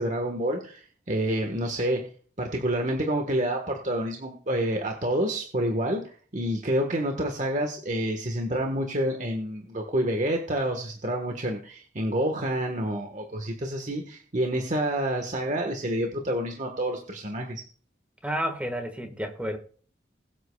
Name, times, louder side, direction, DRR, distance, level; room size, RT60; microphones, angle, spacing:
voice 1, 0.0-2.1 2.4-17.6, right 1 dB, 40° right, 1.4 m, -28 dB
voice 2, 18.2-19.6, equal, 5° right, 1.5 m, -30 dB
21.5 x 8.3 x 2.3 m
head